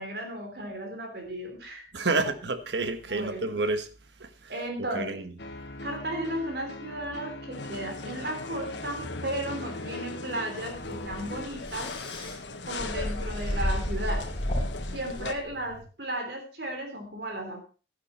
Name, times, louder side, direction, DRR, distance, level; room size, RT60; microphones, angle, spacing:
voice 1, 0.0-2.2 3.1-3.6 4.5-5.3 5.8-11.9 12.7-14.3 14.9-17.6, right 1 dB, 60° right, 3.5 m, -35 dB
voice 2, 1.9-3.9 4.2-4.5 4.9-5.3, right 3 dB, 80° right, 1.3 m, -29 dB
sound 1, 5.4-11.5, left 1 dB, 70° left, 1.6 m, -41 dB
sound 2, 7.5-15.3, left 3 dB, 85° left, 1.4 m, -40 dB
sound 3, 10.7-15.8, left 1 dB, 35° left, 4.8 m, -33 dB
12.5 x 10.0 x 4.2 m
head